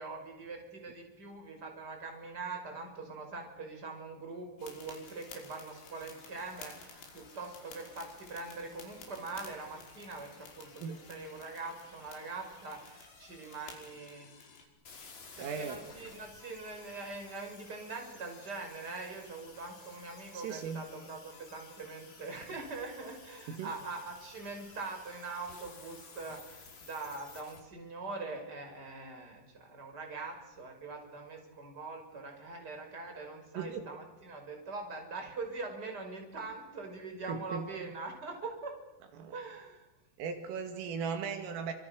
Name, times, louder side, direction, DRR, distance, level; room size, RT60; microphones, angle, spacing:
voice 1, 0.0-14.3 15.4-38.7 39.3-39.9, right 3 dB, 20° right, 3 dB, 6.0 m, -43 dB
sound 1, 4.6-14.6, left 5 dB, 80° left, 8.0 m, -53 dB
sound 2, 14.9-27.6, left 4 dB, 35° left, 4.7 m, -54 dB
voice 2, 15.4-15.8 20.3-20.8 23.5-23.7 33.6-33.9 37.3-37.7 39.2-39.4 40.2-41.7, right 6 dB, 80° right, 5 dB, 4.7 m, -37 dB
29.0 x 27.0 x 6.6 m, 1.0 s
omnidirectional pair, 5.9 m